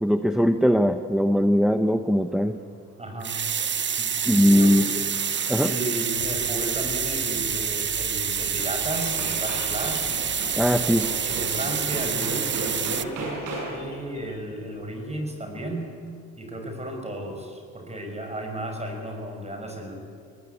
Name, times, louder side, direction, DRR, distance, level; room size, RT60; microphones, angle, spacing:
voice 1, 0.0-2.6 4.3-4.8 5.5-5.7 10.6-11.1, equal, ahead, 9 dB, 0.8 m, -20 dB
voice 2, 3.0-3.4 4.0-4.9 5.6-10.1 10.9-15.9 16.4-19.9, right 1 dB, 20° right, 3 dB, 6.0 m, -34 dB
sound 1, 3.2-13.0, right 7 dB, 40° right, 0.9 m, -27 dB
sound 2, 4.1-5.8 8.2-8.3 8.6-13.9, right 2 dB, 85° right, 7.2 m, -37 dB
sound 3, 6.1-15.1, left 6 dB, 70° left, 4.1 m, -44 dB
23.5 x 19.0 x 8.5 m, 2.4 s
cardioid pair, 90°, 30 cm